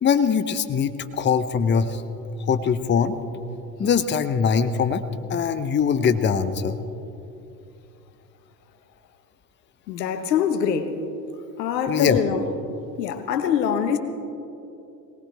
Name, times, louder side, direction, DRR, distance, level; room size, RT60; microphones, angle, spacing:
voice 1, 0.0-2.0 2.5-3.2 3.8-5.0 5.3-6.8 11.9-12.2, left 6 dB, 20° left, 0.8 m, -22 dB
voice 2, 9.9-10.9 11.6-12.4 13.0-14.0, left 7 dB, 80° left, 1.3 m, -23 dB
22.5 x 18.5 x 3.4 m
hypercardioid pair, 80°, 49 cm